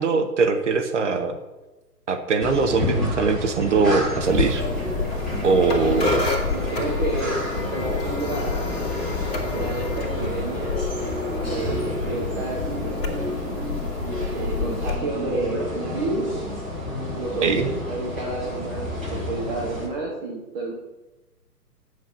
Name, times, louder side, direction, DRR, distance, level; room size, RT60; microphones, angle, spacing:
voice 1, 0.0-1.4 2.1-4.6 5.4-6.1 17.4-17.7, right 4 dB, 50° right, 6 dB, 0.9 m, -21 dB
sound 1, 2.4-19.9, left 1 dB, ahead, 0.6 m, -30 dB
sound 2, 4.2-14.9, left 4 dB, 35° left, 2.1 m, -29 dB
voice 2, 5.7-6.2 6.5-8.6 9.5-10.8 11.4-13.2 14.3-16.3 17.1-20.7, right 3 dB, 30° right, -4 dB, 1.5 m, -30 dB
sound 3, 10.7-16.0, equal, 65° right, 3.1 m, -34 dB
9.4 x 6.6 x 5.3 m, 1.1 s
figure-of-eight pair, 125°, 48 cm